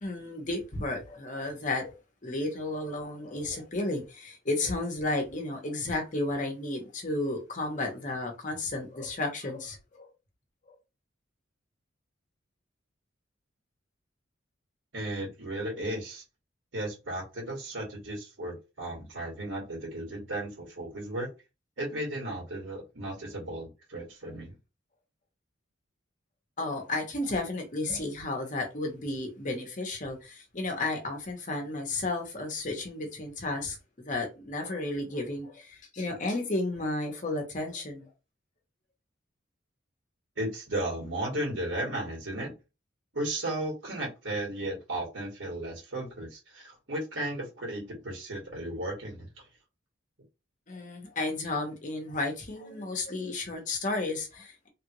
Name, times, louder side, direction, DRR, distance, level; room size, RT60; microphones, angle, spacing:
voice 1, 0.0-1.9 2.2-10.1 10.7-10.8 26.6-38.1 50.7-54.7, left 2 dB, 40° left, 1.0 m, -33 dB
voice 2, 14.9-16.2 16.7-21.3 21.8-24.5 40.4-42.5 43.1-49.5, right 1 dB, 75° right, 1.8 m, -35 dB
3.4 x 2.5 x 3.0 m
head